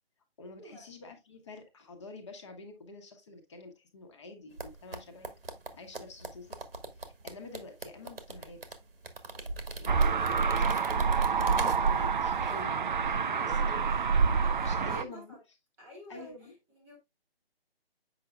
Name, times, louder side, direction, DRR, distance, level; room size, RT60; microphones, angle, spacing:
voice 1, 0.4-5.3 5.7-6.6 6.9-8.6 9.8-11.1 11.4-13.8 14.6-15.3 16.1-16.5, left 3 dB, 30° left, 1.2 m, -47 dB
sound 1, 4.6-12.1 12.4-12.6, right 3 dB, 70° right, 1.4 m, -42 dB
sound 2, 9.9-15.0, right 5 dB, 55° right, 0.5 m, -27 dB
voice 2, 13.3-14.0 14.3-15.4 15.8-16.5 16.8-17.0, equal, 10° right, 1.2 m, -50 dB
7.7 x 5.6 x 2.3 m
figure-of-eight pair, 155°, 30 cm